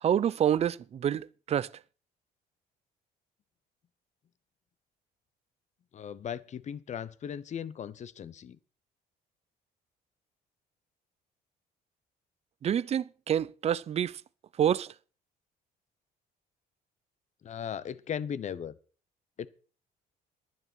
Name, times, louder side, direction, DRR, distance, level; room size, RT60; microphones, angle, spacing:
voice 1, 0.0-1.7 12.6-14.2 14.6-14.9, right 9 dB, 40° right, 0.5 m, -27 dB
voice 2, 5.9-8.6 17.4-18.8 19.4-19.5, left 8 dB, 45° left, 0.9 m, -37 dB
11.0 x 9.3 x 6.1 m
cardioid pair, 110°, 17 cm